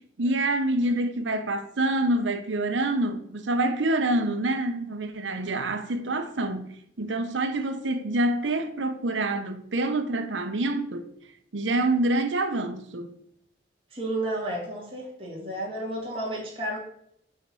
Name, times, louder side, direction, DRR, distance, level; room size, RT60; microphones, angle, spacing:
voice 1, 0.0-6.7 7.0-11.1 11.5-13.1, right 2 dB, 90° right, 0.8 m, -26 dB
voice 2, 13.9-16.8, right 1 dB, 30° right, 2.3 m, -32 dB
5.7 x 4.5 x 6.2 m
head